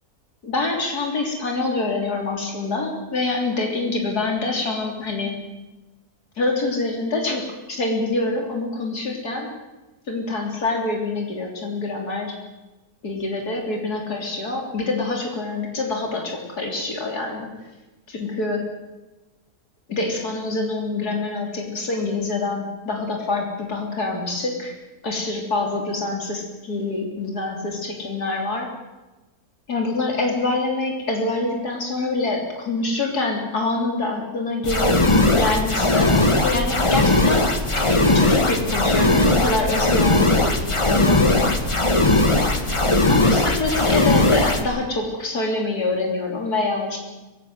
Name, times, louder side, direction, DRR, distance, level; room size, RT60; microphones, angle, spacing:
voice 1, 0.4-5.4 6.4-9.5 10.1-12.3 13.0-17.5 18.1-18.6 19.9-24.8 25.0-28.7 29.7-34.9 35.3-36.1 36.4-37.5 37.9-40.6 40.9-41.6 43.1-47.0, left 3 dB, 90° left, 1 dB, 3.9 m, -25 dB
sound 1, 34.6-44.6, left 2 dB, 20° left, 1.7 m, -18 dB
23.5 x 18.0 x 7.9 m, 1.1 s
omnidirectional pair, 1.6 m